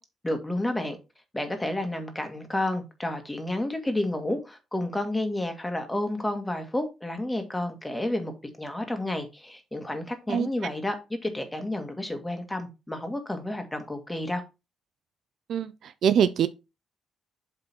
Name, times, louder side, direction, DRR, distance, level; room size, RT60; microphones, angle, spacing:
voice 1, 0.2-1.0 1.3-8.3 8.6-14.4, left 1 dB, 10° left, 1.9 m, -30 dB
voice 2, 15.5-16.5, right 8 dB, 65° right, 0.5 m, -23 dB
7.8 x 3.9 x 4.4 m
cardioid pair, 90°, 0 cm